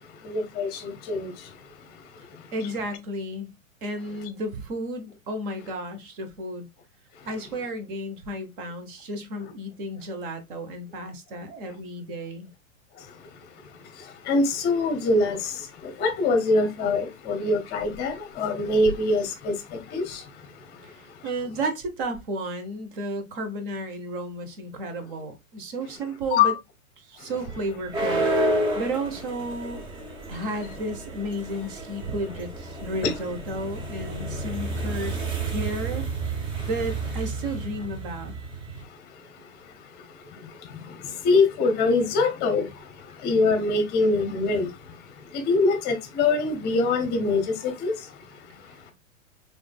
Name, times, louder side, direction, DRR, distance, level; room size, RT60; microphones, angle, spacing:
voice 1, 0.3-0.7 1.1-1.3 14.3-15.4 16.0-19.5 19.9-20.0 26.3-26.5 41.2-42.7 43.2-44.7 45.5-47.9, left 3 dB, 25° left, 0.8 m, -23 dB
voice 2, 2.5-3.5 3.8-6.7 7.2-12.5 20.8-20.9 21.2-26.5 27.1-29.8 30.3-35.1 35.5-36.1 36.3-38.3, right 1 dB, 40° right, 1.0 m, -33 dB
sound 1, 27.3-38.8, right 2 dB, 10° right, 0.5 m, -31 dB
4.9 x 3.3 x 2.3 m
figure-of-eight pair, 105°, 42 cm